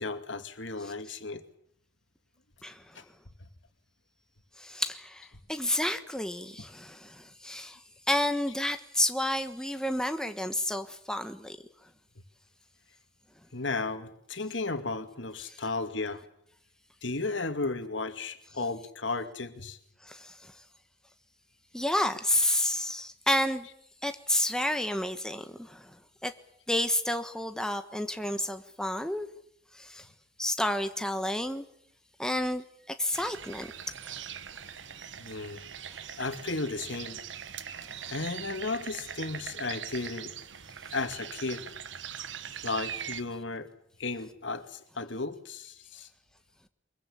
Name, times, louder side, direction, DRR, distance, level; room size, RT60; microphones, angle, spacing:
voice 1, 0.0-1.4 3.0-3.1 13.5-16.2 17.0-19.8 35.2-35.6 36.2-37.2 38.1-40.3 40.9-41.6 42.6-43.7 44.0-46.1, left 3 dB, 90° left, 8 dB, 2.4 m, -34 dB
voice 2, 2.6-3.0 4.6-7.8 8.1-11.6 15.5-15.6 20.0-20.5 21.7-23.7 24.0-25.9 26.2-26.3 26.7-29.3 29.7-30.0 30.4-31.6 32.2-33.7 34.0-34.2, left 1 dB, 5° left, 7 dB, 1.3 m, -30 dB
sound 1, 33.1-43.2, right 8 dB, 85° right, 1.2 m, -41 dB
24.0 x 22.5 x 8.7 m, 0.70 s
head